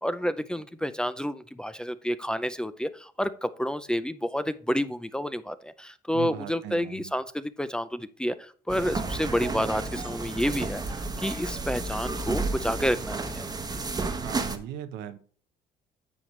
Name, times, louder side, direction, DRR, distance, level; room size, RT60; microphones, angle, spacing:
voice 1, 0.0-10.8 11.2-13.8, equal, 5° left, 13 dB, 0.5 m, -30 dB
voice 2, 6.1-7.1 14.2-15.2, right 11 dB, 85° right, 10 dB, 1.0 m, -38 dB
sound 1, 8.7-14.6, right 3 dB, 20° right, 1.1 m, -32 dB
9.8 x 7.0 x 3.2 m, 0.43 s
cardioid pair, 110°, 17 cm